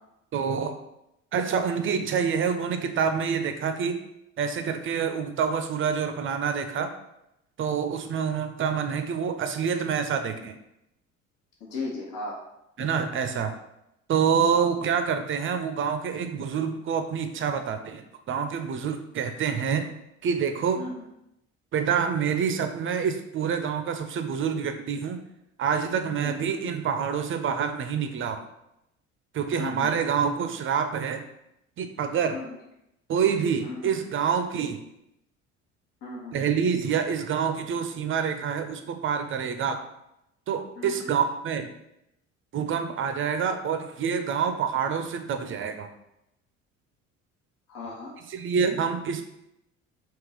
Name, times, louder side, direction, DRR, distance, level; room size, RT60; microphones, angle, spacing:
voice 1, 0.3-0.8 1.3-4.0 4.4-6.9 7.6-10.5 12.8-13.5 14.1-19.9 20.2-20.8 21.7-25.2 25.6-28.5 29.3-31.2 31.8-32.4 33.1-34.8 36.3-39.8 40.5-41.7 42.5-45.9 48.3-49.2, right 7 dB, 30° right, 8 dB, 0.5 m, -27 dB
voice 2, 11.6-12.4 14.5-14.7 20.7-21.0 26.2-26.4 29.6-29.9 32.3-32.6 33.6-33.9 36.0-36.4 40.7-41.1 47.7-48.2, left 3 dB, 55° left, -3 dB, 1.2 m, -36 dB
3.6 x 2.8 x 4.8 m, 0.84 s
figure-of-eight pair, 60°, 39 cm